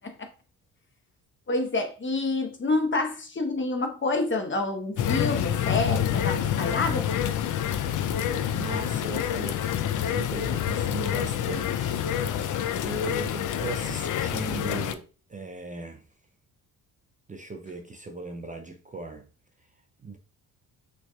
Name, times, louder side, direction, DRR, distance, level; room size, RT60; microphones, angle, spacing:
voice 1, 1.5-7.1, left 3 dB, 30° left, 1.0 m, -28 dB
sound 1, 5.0-15.0, left 10 dB, 55° left, 0.5 m, -27 dB
voice 2, 8.5-9.6 9.9-12.4 12.8-16.0 17.3-19.3 20.0-20.2, right 3 dB, 20° right, 0.5 m, -38 dB
6.1 x 3.4 x 2.3 m
cardioid pair, 80°, 38 cm